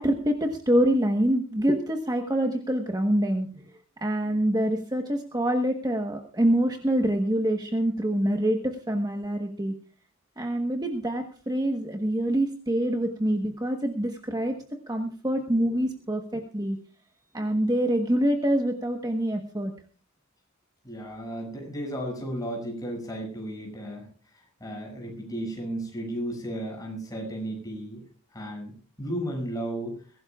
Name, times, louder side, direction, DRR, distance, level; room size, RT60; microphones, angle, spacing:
voice 1, 0.0-3.6 4.0-9.7 10.4-14.6 14.9-16.8 17.3-19.7, right 1 dB, 20° right, 3 dB, 1.2 m, -25 dB
voice 2, 20.8-24.1 24.3-28.0 28.3-28.7 29.0-30.0, right 1 dB, 15° left, 0 dB, 6.7 m, -34 dB
22.5 x 17.0 x 2.4 m, 0.40 s
head